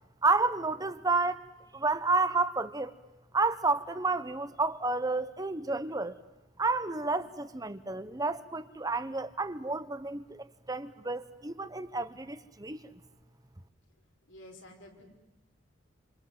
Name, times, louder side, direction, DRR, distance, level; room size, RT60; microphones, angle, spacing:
voice 1, 0.2-1.4 1.7-2.9 3.3-6.2 6.6-12.8, right 3 dB, 20° right, 12 dB, 1.0 m, -30 dB
voice 2, 14.3-15.0, left 1 dB, 85° left, 2 dB, 5.6 m, -50 dB
28.0 x 27.0 x 7.8 m, 1.0 s
head